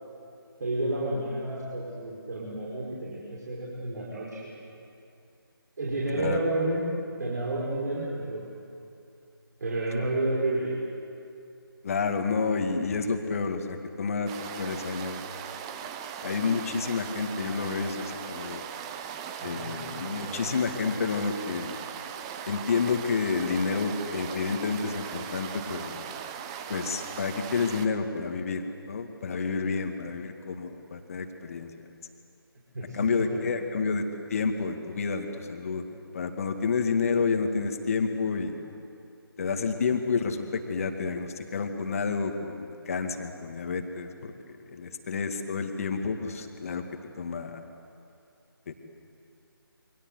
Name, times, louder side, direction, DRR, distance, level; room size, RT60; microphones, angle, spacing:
voice 1, 0.6-4.6 5.8-6.8 7.2-8.5 9.6-10.7 19.4-20.6 32.7-33.7, right 2 dB, 50° right, -5 dB, 5.5 m, -31 dB
voice 2, 11.8-15.2 16.2-18.6 19.4-21.8 22.5-26.1 26.7-31.7 32.9-34.0 34.3-38.7 39.4-44.3 44.7-46.8 47.2-47.6 48.7-48.8, left 5 dB, 35° left, 5 dB, 2.3 m, -29 dB
sound 1, 14.3-27.9, right 8 dB, 15° right, 0.8 m, -39 dB
28.5 x 24.5 x 8.1 m, 2.6 s
figure-of-eight pair, 155°, 12 cm